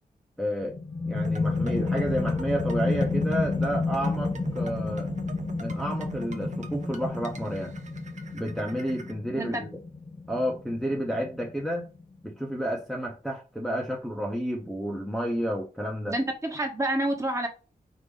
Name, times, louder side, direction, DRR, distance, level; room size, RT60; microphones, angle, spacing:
voice 1, 0.4-0.8 1.1-5.1 5.6-7.7 8.3-9.7 10.3-11.9 12.2-16.2, equal, ahead, 1.0 m, -30 dB
sound 1, 0.6-12.0, left 3 dB, 30° left, 0.8 m, -31 dB
sound 2, 1.1-9.1, right 4 dB, 50° right, 0.7 m, -41 dB
voice 2, 16.1-17.5, right 1 dB, 20° right, 1.3 m, -28 dB
5.4 x 2.9 x 3.3 m
wide cardioid pair, 115°, 15 cm